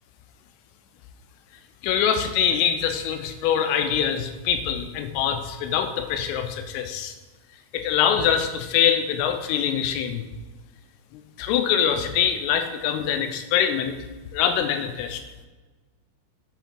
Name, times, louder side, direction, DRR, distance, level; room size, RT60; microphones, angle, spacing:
voice 1, 1.8-7.2 7.7-10.3 11.1-14.0 14.3-15.2, left 8 dB, 85° left, 8 dB, 3.2 m, -24 dB
8.1 x 6.1 x 4.4 m, 1.3 s
omnidirectional pair, 6.0 m